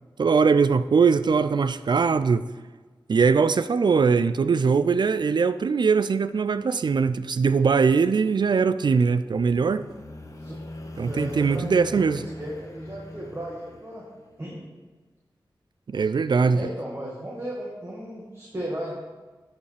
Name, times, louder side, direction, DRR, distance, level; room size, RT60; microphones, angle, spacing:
voice 1, 0.2-2.5 3.1-9.8 11.0-12.2 15.9-16.6, right 5 dB, 60° right, 14 dB, 0.3 m, -21 dB
sound 1, 8.7-14.4, left 1 dB, 40° left, 1.2 m, -40 dB
voice 2, 11.0-14.1 14.4-14.7 16.5-19.0, equal, 30° right, -5 dB, 1.8 m, -35 dB
11.5 x 5.3 x 3.4 m, 1.3 s
cardioid pair, 45°, 9 cm